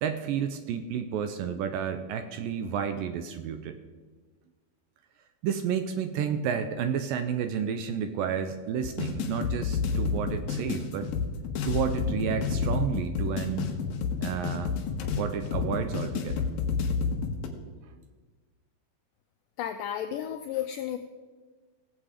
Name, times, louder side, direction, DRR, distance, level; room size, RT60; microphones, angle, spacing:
voice 1, 0.0-3.8 5.4-11.1 11.6-13.8 14.2-14.8 15.2-16.5, right 8 dB, 80° right, 8 dB, 2.1 m, -31 dB
sound 1, 8.8-17.5, left 5 dB, 70° left, 2.7 m, -30 dB
voice 2, 19.6-21.0, left 10 dB, 85° left, 7 dB, 1.9 m, -32 dB
18.0 x 7.7 x 4.9 m, 1.4 s
omnidirectional pair, 4.4 m